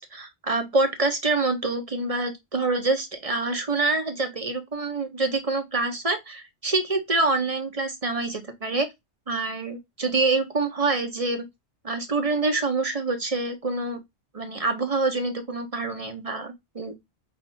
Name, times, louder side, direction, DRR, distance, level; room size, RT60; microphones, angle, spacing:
voice 1, 0.0-8.9 9.3-11.5 11.8-14.0 14.3-16.9, right 3 dB, 35° right, 0.9 m, -26 dB
5.7 x 2.6 x 2.6 m
omnidirectional pair, 1.1 m